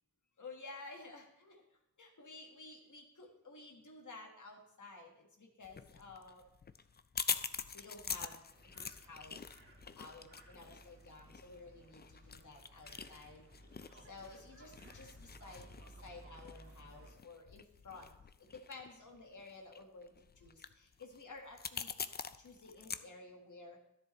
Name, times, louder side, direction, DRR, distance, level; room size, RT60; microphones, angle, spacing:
voice 1, 0.4-1.5 2.0-6.4 7.7-9.4 10.0-13.4 13.9-18.1 18.4-21.9 22.2-23.8, left 3 dB, 70° left, 1 dB, 1.6 m, -53 dB
sound 1, 5.6-23.0, left 6 dB, 35° left, 0.4 m, -45 dB
sound 2, 8.5-17.1, right 1 dB, 45° right, 1.7 m, -58 dB
12.5 x 10.5 x 3.1 m, 0.80 s
wide cardioid pair, 110°, 31 cm